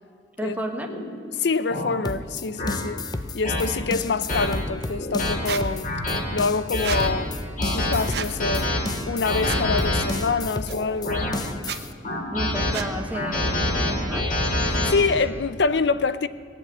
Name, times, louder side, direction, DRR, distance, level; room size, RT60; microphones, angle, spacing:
voice 1, 0.4-0.9 12.3-14.3, right 1 dB, 10° right, 1.2 m, -31 dB
sound 1, 0.9-1.0 1.7-1.9 2.6-2.7 3.4-3.6 4.3-4.5 5.0-5.3 5.8-6.2 6.7-7.1 7.6-7.9 8.4-8.8 9.2-10.0 10.7-11.4 12.0-12.7 13.1-14.9, left 1 dB, 45° left, 2.5 m, -25 dB
voice 2, 1.3-3.0 3.3-5.9 6.3-7.3 7.7-8.7 9.1-11.4 14.7-16.3, left 4 dB, 70° left, 0.5 m, -25 dB
sound 2, 2.0-11.9, left 3 dB, 20° left, 0.5 m, -33 dB
Squeak, 5.5-5.6 6.8-7.0 8.1-8.3 9.4-9.7 10.7-10.8 11.6-11.8 12.7-12.9, right 7 dB, 60° right, 0.7 m, -31 dB
18.5 x 7.7 x 8.5 m
head